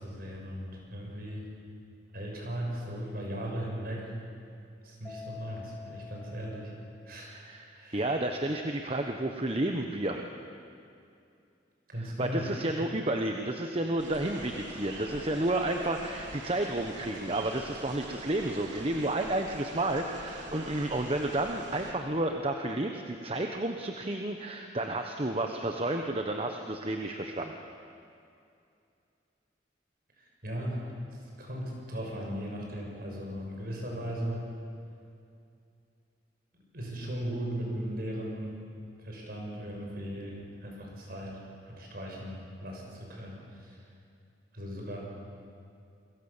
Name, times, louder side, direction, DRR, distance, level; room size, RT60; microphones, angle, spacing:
voice 1, 0.0-1.5 2.1-4.1 4.8-6.7 7.1-7.4 7.7-8.1 11.9-12.5 30.2-30.9 31.4-34.4 36.5-38.6 39.0-41.4 41.7-43.8 44.5-45.0, equal, 55° right, -1 dB, 6.8 m, -37 dB
Mallet percussion, 5.0-7.5, left 6 dB, 10° left, 1.1 m, -48 dB
voice 2, 7.3-10.2 12.0-27.5, right 1 dB, 30° right, 4 dB, 1.1 m, -31 dB
sound 1, 14.0-21.9, right 2 dB, 85° right, 3.6 m, -44 dB
28.5 x 22.5 x 7.4 m, 2.5 s
head